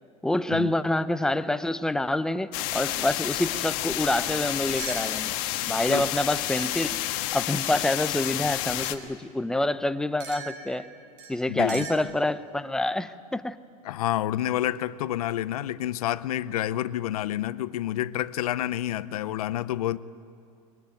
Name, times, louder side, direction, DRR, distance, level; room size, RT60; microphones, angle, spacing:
voice 1, 0.2-5.4 5.7-10.9 11.3-13.6, left 1 dB, 5° left, 12 dB, 0.6 m, -27 dB
sound 1, 2.5-9.0, left 15 dB, 45° left, 1.5 m, -30 dB
sound 2, 4.8-5.6 6.5-8.1 8.8-9.1 10.2-12.0, right 5 dB, 50° right, 5.2 m, -42 dB
voice 2, 11.5-11.9 13.8-20.0, left 13 dB, 75° left, 15 dB, 0.7 m, -29 dB
22.5 x 22.0 x 9.2 m, 2.5 s
supercardioid pair, 145°, 19 cm